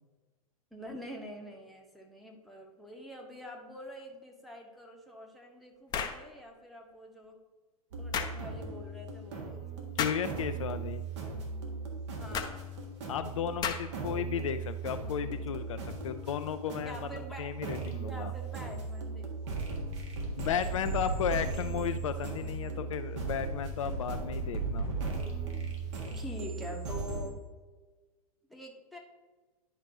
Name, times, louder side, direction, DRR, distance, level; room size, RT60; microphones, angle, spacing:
voice 1, 0.7-7.4 7.9-9.9 12.2-12.7 16.8-17.5 18.0-19.6 26.1-27.4 28.5-29.0, equal, ahead, 0 dB, 1.1 m, -46 dB
sound 1, 5.9-6.2 8.1-8.4 10.0-10.3 12.3-12.5 13.6-14.0, left 7 dB, 20° left, 0.6 m, -33 dB
sound 2, 7.9-27.3, right 4 dB, 50° right, 1.7 m, -37 dB
voice 2, 10.0-11.0 13.1-18.3 20.4-25.0, left 8 dB, 60° left, 9 dB, 0.4 m, -34 dB
10.5 x 5.2 x 2.8 m, 1.3 s
figure-of-eight pair, 100°, 19 cm